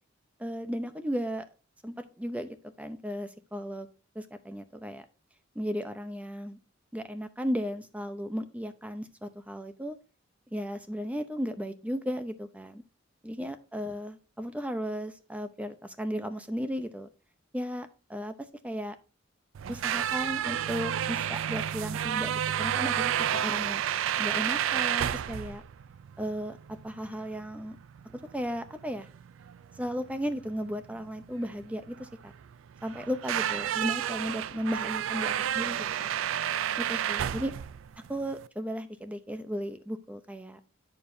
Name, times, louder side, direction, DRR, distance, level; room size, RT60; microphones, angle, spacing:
voice 1, 0.4-1.5 1.8-2.5 2.8-3.9 4.2-5.0 5.6-6.6 6.9-10.0 10.5-12.8 13.2-17.1 17.5-18.3 18.6-19.0 19.7-23.8 24.2-25.6 26.2-26.6 26.8-27.8 28.3-29.1 29.8-32.3 32.8-36.1 36.8-37.5 38.1-40.6, equal, 5° right, 9 dB, 0.6 m, -35 dB
sound 1, 19.5-38.5, right 10 dB, 65° right, 0.3 m, -31 dB
8.5 x 6.8 x 2.6 m, 0.33 s
head